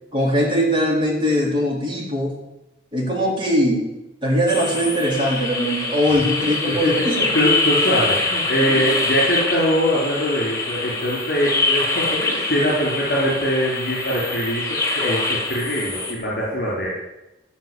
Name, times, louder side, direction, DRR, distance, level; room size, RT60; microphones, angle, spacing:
voice 1, 0.1-2.3 2.9-3.8 4.2-7.3 8.6-8.8, equal, 25° right, -3 dB, 3.8 m, -21 dB
sound 1, 4.5-16.1, left 3 dB, 15° left, 2.1 m, -24 dB
voice 2, 6.4-17.0, equal, 60° left, -6 dB, 4.7 m, -22 dB
15.5 x 5.8 x 8.1 m, 0.97 s
head